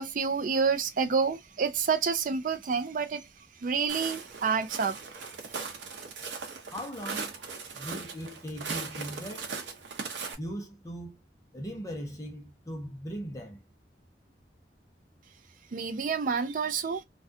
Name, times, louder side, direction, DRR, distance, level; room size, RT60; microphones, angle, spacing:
voice 1, 0.0-3.2 3.6-5.0 15.7-17.0, right 5 dB, 50° right, 0.4 m, -28 dB
Walk footsteps, 3.9-10.3, right 5 dB, 85° right, 0.7 m, -39 dB
voice 2, 6.7-7.3 7.7-9.6 10.4-11.2 11.5-13.6, equal, 20° left, 0.6 m, -39 dB
2.4 x 2.2 x 2.5 m
head